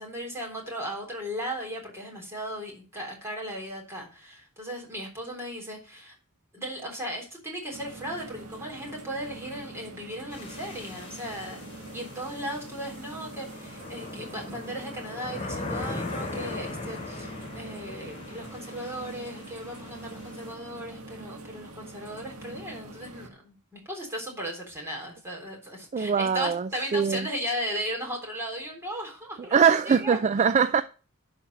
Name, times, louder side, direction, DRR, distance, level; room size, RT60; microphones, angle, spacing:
voice 1, 0.0-6.2 6.5-29.5 29.9-30.2, equal, 10° right, 3.5 m, -36 dB
sound 1, 7.7-23.3, right 2 dB, 80° right, 1.6 m, -44 dB
sound 2, 10.3-20.5, left 2 dB, 25° left, 3.8 m, -39 dB
voice 2, 25.9-27.3 29.5-30.8, right 6 dB, 30° right, 0.4 m, -22 dB
11.0 x 4.4 x 6.4 m
head